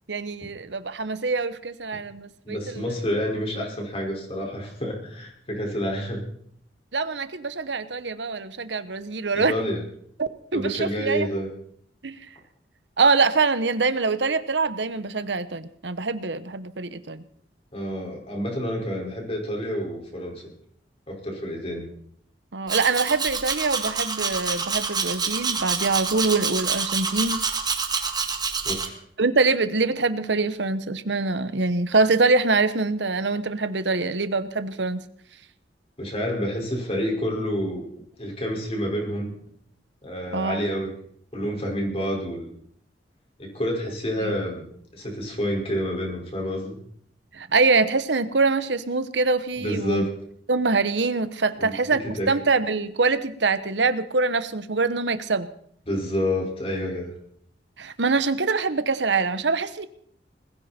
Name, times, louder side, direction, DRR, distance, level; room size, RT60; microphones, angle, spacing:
voice 1, 0.1-2.8 6.9-9.5 10.2-11.3 12.0-12.2 13.0-17.2 22.5-27.4 29.2-35.0 40.3-40.6 44.2-44.4 47.3-50.0 50.5-55.5 57.8-59.9, right 3 dB, 90° right, 13 dB, 1.1 m, -24 dB
voice 2, 2.5-6.3 9.3-9.8 10.5-11.5 17.7-20.3 21.1-21.8 28.6-29.0 36.0-37.9 38.2-39.3 40.0-40.9 41.3-42.5 43.4-44.7 44.9-46.8 49.5-50.1 51.6-51.7 52.2-52.3 55.9-57.1, equal, 35° left, 0 dB, 5.3 m, -28 dB
Domestic sounds home sounds, 22.7-28.9, right 5 dB, 25° right, 1.8 m, -27 dB
20.5 x 16.0 x 4.4 m, 0.65 s
head